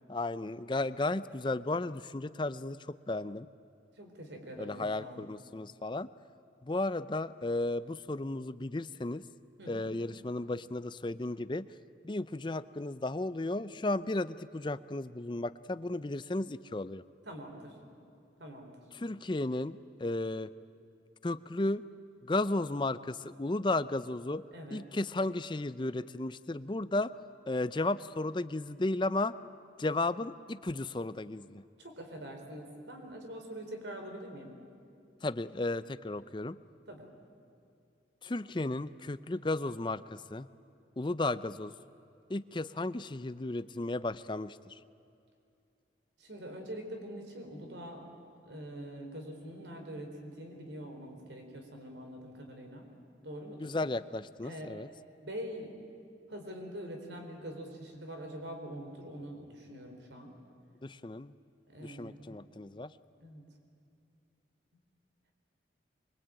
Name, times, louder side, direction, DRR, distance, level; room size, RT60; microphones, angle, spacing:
voice 1, 0.1-3.5 4.6-6.1 6.6-9.2 9.7-11.7 12.0-17.0 18.9-20.5 21.2-21.8 22.2-24.4 24.7-27.1 27.5-29.3 29.8-31.6 35.2-36.6 38.2-40.5 41.0-41.7 42.3-44.8 53.6-54.9 60.8-61.3 61.8-62.9, left 2 dB, 25° left, 15 dB, 0.5 m, -34 dB
voice 2, 4.0-5.2 9.6-9.9 17.2-17.7 18.4-18.7 24.5-24.8 31.8-34.5 36.9-37.1 46.2-48.1 48.4-52.9 53.2-53.7 54.4-54.7 55.2-55.7 56.3-60.3 61.7-62.4 63.2-63.4, equal, 75° right, 3 dB, 4.2 m, -44 dB
24.0 x 23.0 x 9.0 m, 2.5 s
head